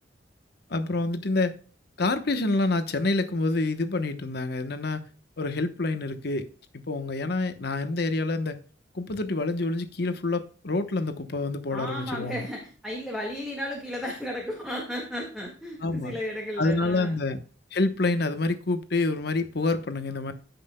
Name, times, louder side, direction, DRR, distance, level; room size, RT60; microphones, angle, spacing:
voice 1, 0.7-1.5 2.0-5.1 5.4-6.4 6.9-8.6 8.9-12.5 15.8-16.2 16.6-17.4 17.7-20.3, left 2 dB, 65° left, 9 dB, 1.0 m, -27 dB
voice 2, 11.7-17.2, equal, ahead, -1 dB, 1.8 m, -34 dB
15.0 x 5.9 x 2.2 m, 0.38 s
head